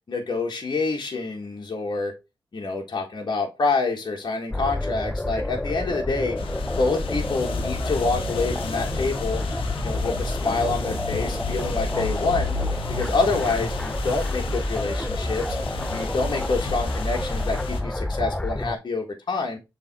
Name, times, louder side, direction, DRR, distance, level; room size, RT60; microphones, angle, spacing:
voice 1, 0.1-2.1 2.5-6.4 6.8-9.4 9.8-12.5 12.9-15.4 15.9-19.6, left 3 dB, 55° left, 1 dB, 1.6 m, -27 dB
sound 1, 4.5-18.8, left 1 dB, 10° left, 0.6 m, -29 dB
sound 2, 6.4-17.8, left 4 dB, 85° left, 0.9 m, -33 dB
6.7 x 3.6 x 4.1 m, 0.25 s
supercardioid pair, 40°, 9 cm